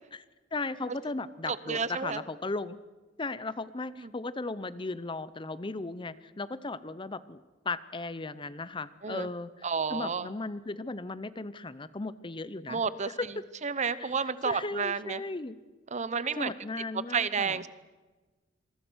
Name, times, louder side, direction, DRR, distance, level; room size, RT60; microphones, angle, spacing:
voice 1, 0.5-2.8 3.2-12.8 13.2-13.3 14.0-15.6 16.4-17.6, left 3 dB, 25° left, 16 dB, 0.7 m, -36 dB
voice 2, 1.5-2.2 4.0-4.1 9.0-9.3 9.6-10.3 12.7-13.1 13.6-15.2 15.9-16.5 17.1-17.7, right 5 dB, 40° right, 16 dB, 0.8 m, -31 dB
27.0 x 22.5 x 6.3 m, 1.2 s
head